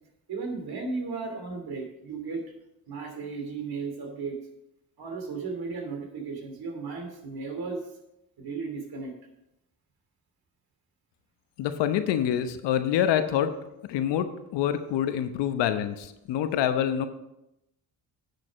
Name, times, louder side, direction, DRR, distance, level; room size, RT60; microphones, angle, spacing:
voice 1, 0.3-2.4 2.9-4.4 5.0-7.8 8.4-9.1, right 4 dB, 50° right, 3 dB, 2.9 m, -35 dB
voice 2, 11.6-13.5 13.9-17.1, left 10 dB, 60° left, 10 dB, 1.0 m, -26 dB
9.8 x 6.8 x 5.2 m, 0.88 s
hypercardioid pair, 55°, 47 cm